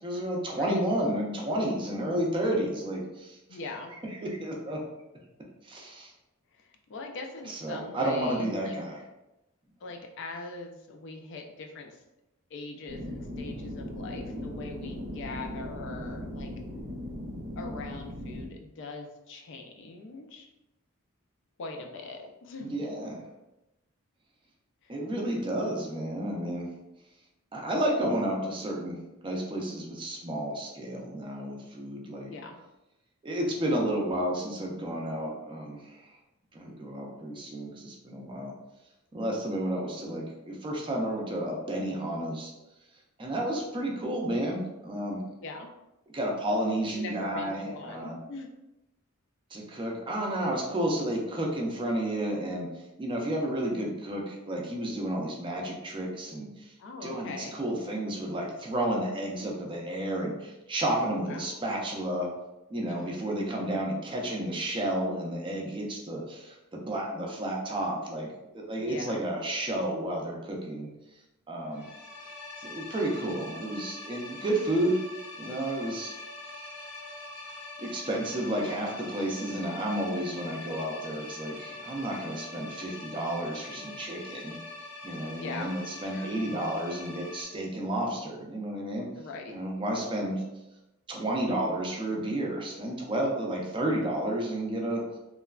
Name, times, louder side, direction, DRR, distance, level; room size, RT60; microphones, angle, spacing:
voice 1, 0.0-3.4 4.0-4.8 5.6-6.1 7.5-9.0 22.6-23.2 24.9-26.7 27.5-32.3 33.2-36.1 36.5-38.5 39.1-42.5 43.2-45.2 46.1-48.2 49.5-56.7 57.0-62.3 62.7-70.9 71.5-71.9 72.6-75.0 75.4-76.2 77.8-84.6 85.0-89.1 89.5-90.4 91.1-95.1, right 1 dB, 25° right, -1 dB, 0.4 m, -31 dB
voice 2, 3.5-3.9 6.5-8.7 9.8-12.0 12.5-16.5 17.6-20.5 21.6-22.8 24.8-24.9 32.3-32.6 45.4-45.7 46.9-48.5 56.8-57.6 61.0-61.5 62.8-63.0 68.8-69.2 85.2-86.3 89.2-89.6, left 3 dB, 60° left, 3 dB, 0.4 m, -41 dB
sound 1, 12.9-18.5, left 1 dB, 85° right, 0.6 m, -38 dB
sound 2, 71.7-87.4, left 2 dB, 80° left, 0.7 m, -43 dB
3.1 x 2.1 x 2.3 m, 0.95 s
head